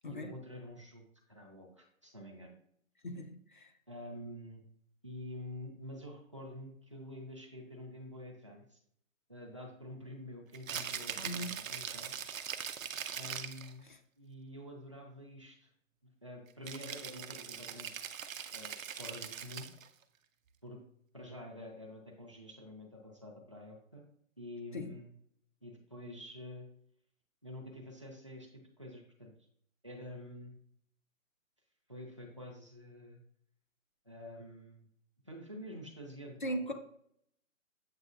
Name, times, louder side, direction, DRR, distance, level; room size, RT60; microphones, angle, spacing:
voice 1, 0.1-2.6 3.9-4.6 5.0-8.8 9.3-12.1 13.1-13.9 14.2-15.7 16.0-17.9 18.5-19.7 20.6-20.8 21.1-24.0 24.4-25.1 25.6-26.7 27.4-29.3 29.8-30.5 31.9-33.2 34.0-34.8 35.2-36.7, left 1 dB, 25° right, 0 dB, 0.4 m, -48 dB
voice 2, 3.0-3.7 11.2-11.6 13.9-14.0 24.7-24.9 36.4-36.7, equal, 40° left, 6 dB, 0.4 m, -39 dB
Rattle (instrument), 10.5-13.7 16.6-19.9, right 8 dB, 75° right, 0.6 m, -41 dB
7.4 x 2.8 x 2.4 m, 0.67 s
hypercardioid pair, 165°, 40 cm